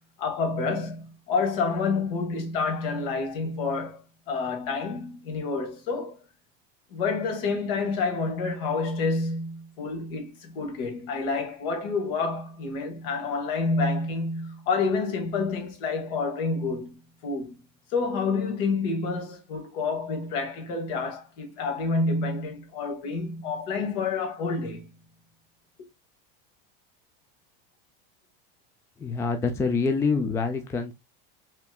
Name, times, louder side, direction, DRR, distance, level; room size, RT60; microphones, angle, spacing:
voice 1, 0.2-4.0 4.3-6.2 6.9-17.5 17.9-24.9, left 4 dB, 65° left, 2.2 m, -28 dB
voice 2, 29.0-30.9, left 4 dB, 10° left, 0.4 m, -26 dB
5.8 x 3.4 x 2.3 m
supercardioid pair, 160°, 31 cm